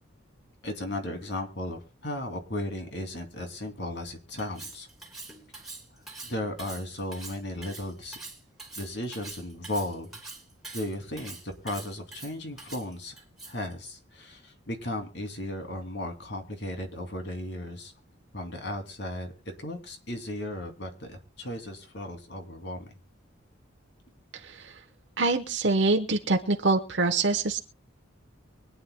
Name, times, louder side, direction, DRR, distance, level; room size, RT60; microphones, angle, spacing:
voice 1, 0.6-4.9 5.9-8.2 8.8-10.2 10.7-17.9 18.3-19.3 19.6-22.9, left 1 dB, 55° left, 4 dB, 2.7 m, -36 dB
Cutlery silverware, 4.4-13.7, right 3 dB, ahead, 2.8 m, -44 dB
voice 2, 24.4-24.7 25.2-27.6, right 3 dB, 60° right, 4 dB, 1.0 m, -25 dB
24.5 x 9.4 x 2.2 m, 0.33 s
head